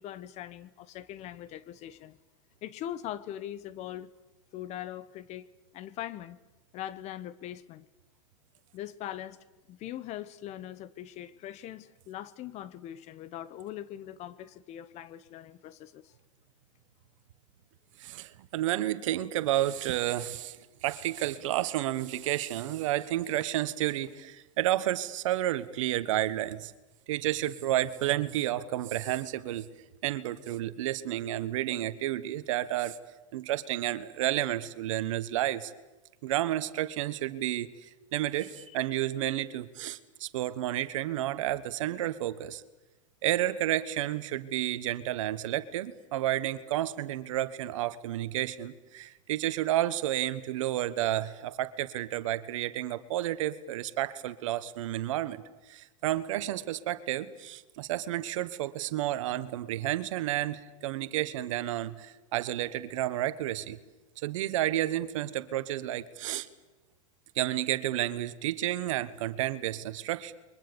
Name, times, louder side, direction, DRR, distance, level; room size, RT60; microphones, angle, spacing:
voice 1, 0.0-2.2 2.6-4.1 4.5-5.5 5.7-6.4 6.7-7.8 8.7-9.4 9.7-16.1 38.7-38.8, left 12 dB, 40° left, 1.1 m, -41 dB
voice 2, 18.0-20.6 20.8-26.7 27.1-29.7 30.0-33.0 33.3-35.7 36.2-42.6 43.2-63.8 64.2-66.5 67.3-70.3, right 14 dB, 70° right, 1.4 m, -31 dB
29.0 x 23.0 x 7.1 m
hypercardioid pair, 115°, 17 cm